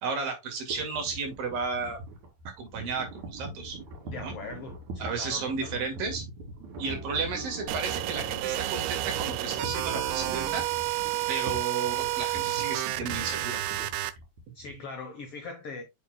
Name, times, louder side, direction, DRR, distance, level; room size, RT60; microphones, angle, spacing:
voice 1, 0.0-2.0 2.5-3.8 4.2-4.3 5.0-6.2 6.8-10.7 11.3-13.6, right 4 dB, 70° right, 3.8 m, -33 dB
sound 1, 0.7-14.8, right 2 dB, 55° right, 3.5 m, -43 dB
voice 2, 4.0-5.9 14.5-15.8, left 4 dB, 75° left, 1.3 m, -41 dB
sound 2, 6.8-10.6, right 1 dB, 5° right, 3.0 m, -42 dB
sound 3, 7.7-14.1, right 16 dB, 90° right, 2.6 m, -30 dB
7.3 x 7.1 x 2.2 m
omnidirectional pair, 4.2 m